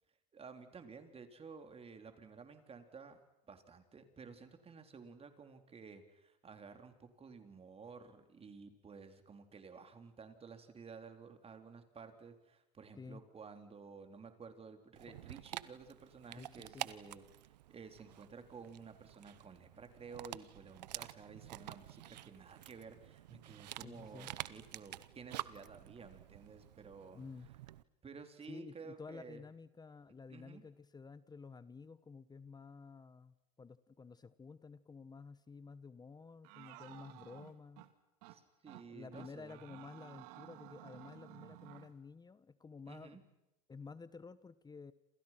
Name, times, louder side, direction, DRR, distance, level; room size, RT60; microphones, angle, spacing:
voice 1, 0.3-3.2 3.5-27.2 28.0-29.4 30.3-30.6 38.3-39.6 42.9-43.2, right 5 dB, 30° right, 7 dB, 3.9 m, -53 dB
Dog, 15.0-27.8, right 14 dB, 90° right, 0.9 m, -49 dB
voice 2, 16.3-16.9 23.8-24.3 27.1-27.5 28.5-37.9 38.9-43.2 43.7-44.9, left 4 dB, 20° left, 16 dB, 1.1 m, -52 dB
sound 1, 36.4-37.9 38.2-38.4 38.7-38.9 39.1-41.9, right 15 dB, 75° right, 2.4 m, -54 dB
28.5 x 28.0 x 6.0 m, 0.94 s
hypercardioid pair, 90°, 21 cm